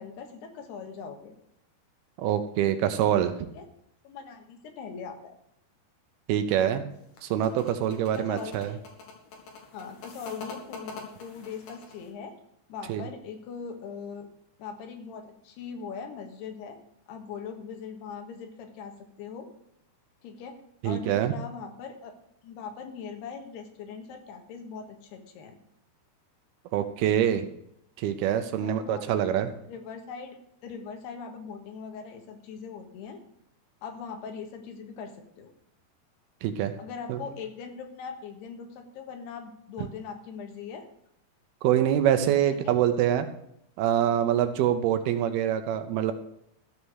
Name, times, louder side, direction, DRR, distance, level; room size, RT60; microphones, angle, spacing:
voice 1, 0.0-1.3 3.5-3.6 4.0-5.4 8.1-8.8 9.7-12.3 12.7-14.3 14.6-16.8 17.1-19.5 20.2-22.1 22.4-25.6 28.6-30.4 30.6-33.2 33.8-35.5 36.8-40.9 42.5-42.8, left 6 dB, 80° left, 5 dB, 3.4 m, -41 dB
voice 2, 2.2-3.3 6.3-6.9 7.2-8.7 12.9-13.0 20.8-21.3 26.7-27.5 28.0-29.5 36.4-36.7 37.1-37.2 41.6-43.3 43.8-46.1, right 10 dB, 75° right, 9 dB, 2.5 m, -25 dB
sound 1, 6.9-12.1, left 4 dB, 55° left, 3.1 m, -44 dB
13.5 x 6.7 x 6.3 m, 0.76 s
omnidirectional pair, 4.8 m